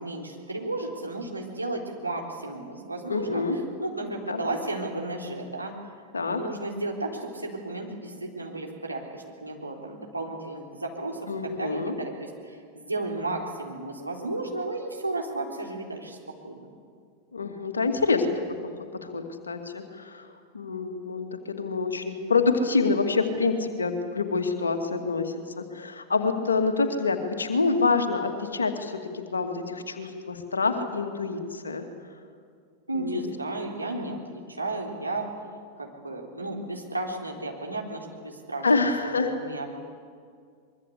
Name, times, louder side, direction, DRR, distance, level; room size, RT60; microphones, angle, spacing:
voice 1, 0.0-3.4 3.8-5.7 6.3-16.2 16.4-16.7 32.9-35.3 35.8-38.9 39.2-39.7, right 2 dB, 85° right, 0 dB, 3.9 m, -33 dB
voice 2, 3.1-3.6 4.3-4.4 6.1-6.4 11.3-11.9 17.3-18.3 19.0-31.9 32.9-33.2 38.6-39.3, left 4 dB, 75° left, 5 dB, 2.4 m, -27 dB
24.0 x 22.5 x 8.2 m, 2.1 s
figure-of-eight pair, 90°, 0 cm